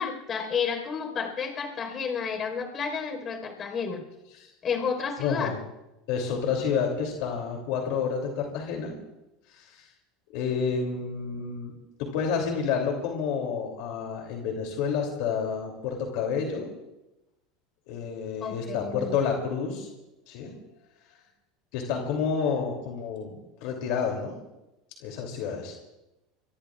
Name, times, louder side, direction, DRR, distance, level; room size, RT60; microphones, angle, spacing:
voice 1, 0.0-4.0 4.6-5.5 18.4-19.1, left 6 dB, 35° left, 3 dB, 4.6 m, -31 dB
voice 2, 5.2-5.6 6.1-8.9 9.5-9.9 10.3-11.7 12.0-16.7 17.9-19.9 20.3-20.5 21.7-24.3 25.0-25.7, left 6 dB, 70° left, 1 dB, 3.0 m, -29 dB
24.0 x 23.5 x 2.5 m, 0.96 s
supercardioid pair, 110°, 0 cm